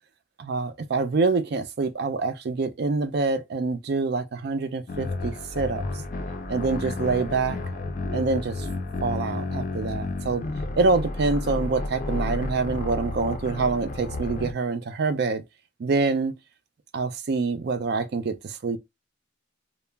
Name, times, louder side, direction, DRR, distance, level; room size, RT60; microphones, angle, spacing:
voice 1, 0.4-5.8 6.5-7.6 8.1-8.7 9.0-10.4 10.8-15.4 15.8-16.3 16.9-18.8, right 4 dB, 55° right, 0.4 m, -26 dB
sound 1, 4.9-14.5, left 2 dB, 40° left, 0.4 m, -31 dB
2.3 x 2.0 x 3.3 m
head